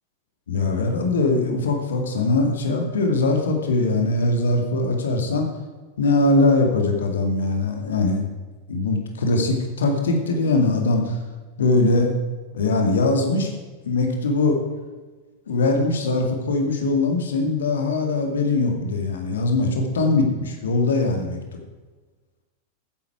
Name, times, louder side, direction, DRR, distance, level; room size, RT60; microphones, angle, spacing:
voice 1, 0.5-5.5 6.0-8.3 8.7-11.2 11.6-12.1 12.5-13.5 13.8-14.6 15.5-21.4, left 2 dB, 65° left, 3 dB, 2.2 m, -21 dB
14.0 x 10.0 x 4.8 m, 1.3 s
figure-of-eight pair, 90°, 0 cm